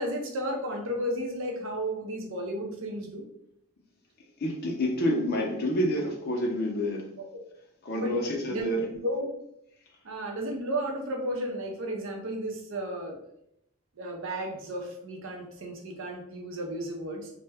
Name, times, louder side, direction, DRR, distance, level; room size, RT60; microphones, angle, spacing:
voice 1, 0.0-3.2 7.2-7.4 8.0-8.7 9.0-9.3 10.0-13.2 14.0-17.3, equal, 65° right, 1 dB, 0.5 m, -33 dB
voice 2, 4.4-7.1 7.8-8.8, equal, 45° left, 1 dB, 0.5 m, -28 dB
2.1 x 2.1 x 3.3 m, 0.77 s
head